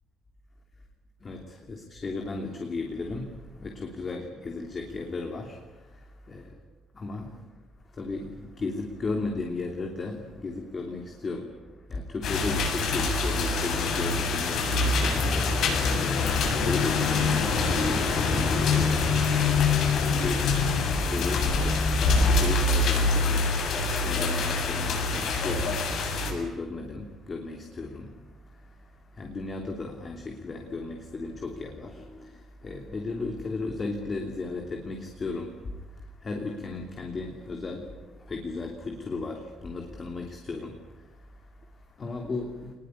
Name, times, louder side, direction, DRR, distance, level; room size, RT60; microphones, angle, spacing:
voice 1, 1.2-6.6 6.9-7.5 7.8-42.7, left 3 dB, 25° left, 3 dB, 2.9 m, -36 dB
sound 1, 12.2-26.3, left 4 dB, 55° left, 7.4 m, -25 dB
27.0 x 21.0 x 9.7 m, 1.2 s
cardioid pair, 175°, 0 cm